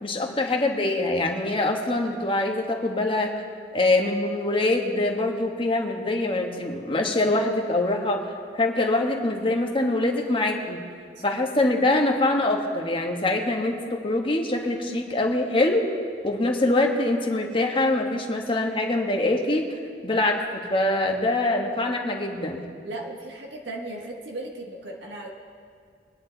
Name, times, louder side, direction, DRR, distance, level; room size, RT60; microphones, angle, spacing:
voice 1, 0.0-3.4 3.7-8.2 8.5-10.8 11.2-15.8 16.2-19.7 20.0-22.6, left 2 dB, 30° left, 2 dB, 1.4 m, -24 dB
voice 2, 22.8-25.3, right 2 dB, 75° right, -1 dB, 1.7 m, -37 dB
23.5 x 10.0 x 4.0 m, 2.3 s
head